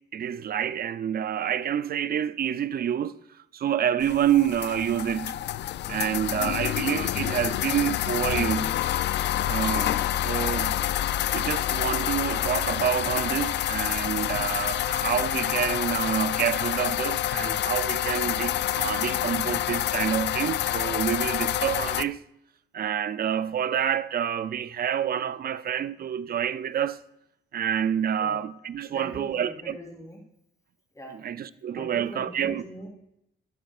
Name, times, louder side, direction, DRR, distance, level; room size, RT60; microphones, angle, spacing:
voice 1, 0.1-3.2 3.5-5.4 5.9-8.8 9.5-10.8 11.3-22.2 22.7-27.0 27.5-29.8 31.1-32.6, right 9 dB, 50° right, 0.5 m, -28 dB
sound 1, 4.0-22.0, left 12 dB, 60° left, 0.4 m, -27 dB
voice 2, 28.9-30.2 30.9-31.2 31.7-32.9, left 1 dB, 15° left, 3.7 m, -41 dB
13.0 x 11.5 x 2.5 m
cardioid pair, 90°, 20 cm